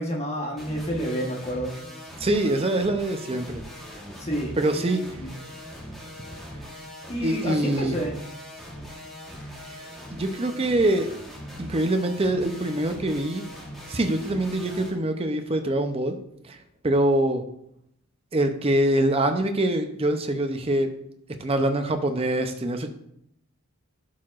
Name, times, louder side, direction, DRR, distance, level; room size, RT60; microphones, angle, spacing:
voice 1, 0.0-1.8 4.2-5.4 7.1-8.2, equal, 30° left, 0 dB, 1.2 m, -30 dB
sound 1, 0.6-14.9, equal, ahead, 1.4 m, -41 dB
voice 2, 2.2-3.5 4.6-5.1 7.2-8.0 10.1-11.1 11.6-13.4 13.9-16.1 16.4-16.6 16.8-17.4 18.3-20.9 21.4-22.9, right 1 dB, 25° right, 6 dB, 0.6 m, -24 dB
11.0 x 4.6 x 2.5 m, 0.74 s
head